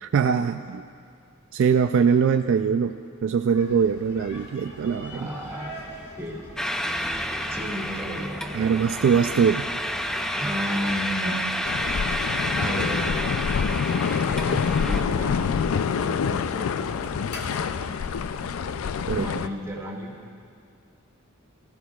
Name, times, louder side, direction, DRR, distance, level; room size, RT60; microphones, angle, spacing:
voice 1, 0.0-0.9 1.5-3.0 3.2-5.3 8.5-9.7 11.2-11.4 19.1-19.3, right 6 dB, 65° right, 8 dB, 0.3 m, -22 dB
sound 1, 3.5-18.9, left 1 dB, 55° left, 1.6 m, -43 dB
voice 2, 5.1-5.8 6.2-6.5 7.5-8.7 10.3-11.4 12.2-13.0 14.3-15.4 15.7-17.3 19.1-20.1, equal, 15° right, -3 dB, 1.6 m, -33 dB
sound 2, 6.6-15.0, equal, 5° left, 0.4 m, -30 dB
sound 3, 11.6-19.5, left 6 dB, 70° left, 0.4 m, -26 dB
18.5 x 15.0 x 2.3 m, 2.3 s
head